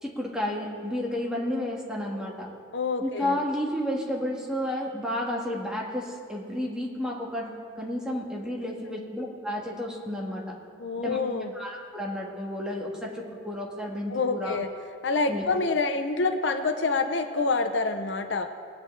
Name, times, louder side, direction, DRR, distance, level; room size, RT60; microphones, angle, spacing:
voice 1, 0.0-2.5 3.0-7.5 7.8-10.5 11.0-11.2 11.5-14.6 15.3-15.5, left 1 dB, 5° right, -3 dB, 1.6 m, -31 dB
voice 2, 2.7-3.4 10.8-11.5 14.1-14.7 15.0-18.5, left 3 dB, 70° left, 7 dB, 0.7 m, -27 dB
20.0 x 8.6 x 3.3 m, 2.4 s
head